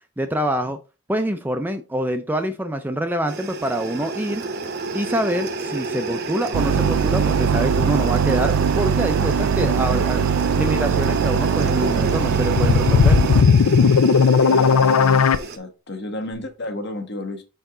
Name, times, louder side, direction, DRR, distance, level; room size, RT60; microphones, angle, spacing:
voice 1, 0.2-0.8 1.1-4.4 4.9-10.2 10.6-13.2, right 1 dB, 10° right, 7 dB, 0.4 m, -25 dB
sound 1, 3.3-15.6, right 3 dB, 50° right, 0.8 m, -29 dB
sound 2, 6.5-13.4, right 6 dB, 80° right, 0.4 m, -21 dB
sound 3, 12.1-15.4, left 5 dB, 90° left, 0.5 m, -15 dB
voice 2, 14.5-17.4, left 2 dB, 50° left, 5 dB, 1.2 m, -32 dB
5.8 x 4.5 x 3.7 m, 0.31 s
head